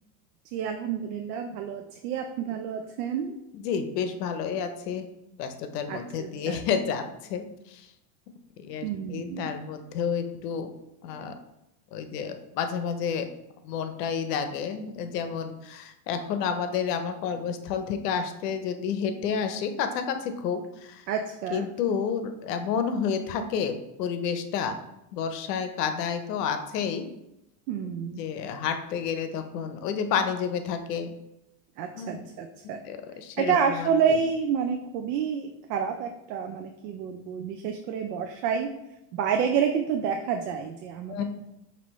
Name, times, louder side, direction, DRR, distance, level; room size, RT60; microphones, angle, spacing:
voice 1, 0.5-3.4 5.9-6.6 8.8-9.5 21.1-21.7 27.7-28.3 31.8-32.8 33.4-38.7 39.1-41.2, right 7 dB, 80° right, 5 dB, 0.6 m, -29 dB
voice 2, 3.5-5.0 5.4-7.0 7.3-7.9 8.6-10.7 11.0-11.3 11.9-13.3 13.6-21.0 21.5-24.8 25.1-27.1 28.0-31.1 32.0-32.3 32.9-33.9 41.1-41.2, left 7 dB, 80° left, 8 dB, 0.8 m, -30 dB
5.3 x 2.8 x 3.1 m, 0.87 s
supercardioid pair, 130°, 47 cm